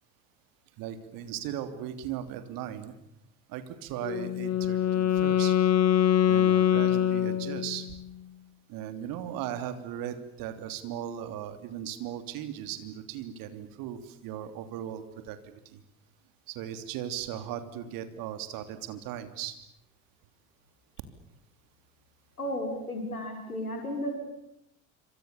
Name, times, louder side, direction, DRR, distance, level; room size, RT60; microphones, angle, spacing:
voice 1, 0.8-2.9 3.5-5.6 6.2-7.9 8.7-15.8 16.5-19.6, right 10 dB, 50° right, 10 dB, 3.2 m, -37 dB
Wind instrument woodwind instrument, 4.0-7.9, left 10 dB, 35° left, 2.8 m, -24 dB
voice 2, 22.4-24.1, left 1 dB, 85° left, 3 dB, 6.4 m, -33 dB
27.5 x 26.0 x 7.2 m, 0.79 s
figure-of-eight pair, 65°, 43 cm